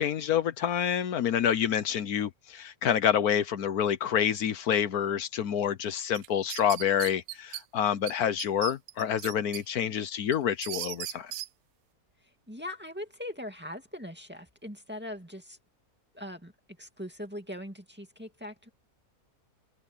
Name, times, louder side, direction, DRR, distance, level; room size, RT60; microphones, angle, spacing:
voice 1, 0.0-11.3, left 9 dB, 75° left, 1.4 m, -28 dB
sound 1, 6.1-7.6 8.1-8.2 8.4-9.6 10.0-11.5, right 13 dB, 65° right, 0.8 m, -37 dB
voice 2, 12.2-15.6 16.1-16.5 16.8-18.7, left 1 dB, 5° right, 2.2 m, -41 dB
omnidirectional pair, 1.6 m